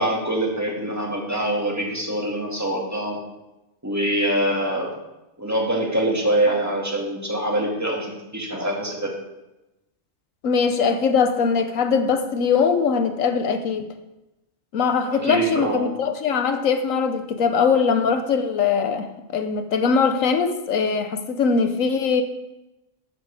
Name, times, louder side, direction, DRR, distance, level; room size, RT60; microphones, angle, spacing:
voice 1, 0.0-3.2 3.8-4.9 5.4-9.1 15.1-15.9, right 1 dB, 10° right, -1 dB, 2.1 m, -24 dB
voice 2, 10.4-13.9 14.7-22.2, left 5 dB, 80° left, 9 dB, 1.3 m, -21 dB
12.5 x 9.7 x 3.5 m, 0.96 s
omnidirectional pair, 1.4 m